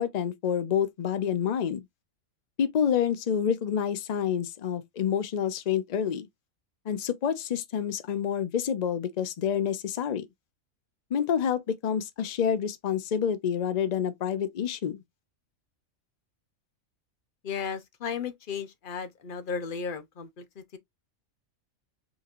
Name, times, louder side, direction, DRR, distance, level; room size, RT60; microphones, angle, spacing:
voice 1, 0.0-1.8 2.6-6.3 6.9-10.3 11.1-15.0, left 8 dB, 85° left, 0.3 m, -28 dB
voice 2, 17.4-20.8, left 6 dB, 50° left, 0.7 m, -35 dB
5.4 x 2.9 x 2.4 m
omnidirectional pair, 1.4 m